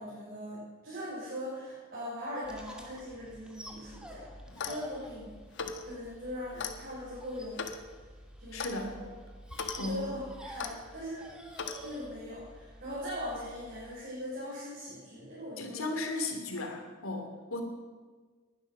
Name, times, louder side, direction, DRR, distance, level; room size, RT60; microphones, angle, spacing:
voice 1, 0.0-4.3 4.6-5.3 5.8-7.6 8.4-8.9 9.7-11.3 11.8-15.9, equal, 45° right, -9 dB, 6.5 m, -40 dB
sound 1, 2.4-14.0, equal, 5° right, 2.2 m, -50 dB
Clock, 4.5-4.9 5.5-5.8 6.6-6.8 7.6-7.8 8.6-8.8 9.5-9.8 10.6-10.7 11.6-11.8, left 6 dB, 60° left, 1.3 m, -37 dB
voice 2, 8.5-9.0 9.8-10.1 15.6-17.6, left 2 dB, 80° left, 4 dB, 2.9 m, -36 dB
20.5 x 11.5 x 6.0 m, 1.5 s
head